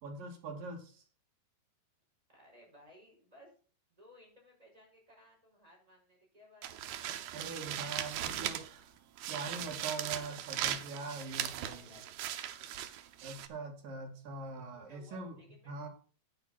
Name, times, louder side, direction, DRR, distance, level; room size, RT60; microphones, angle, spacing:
voice 1, 0.0-1.0 7.3-8.9 9.3-11.9 13.2-15.4 15.7-15.9, right 3 dB, 70° right, 2 dB, 4.2 m, -43 dB
voice 2, 2.3-3.5 3.9-6.8 11.1-12.7 13.1-13.3 14.5-15.7, equal, 10° right, -2 dB, 5.4 m, -60 dB
sound 1, 6.6-8.8 9.2-13.5, right 11 dB, 90° right, 2.8 m, -39 dB
11.0 x 9.5 x 4.2 m, 0.41 s
omnidirectional pair, 4.2 m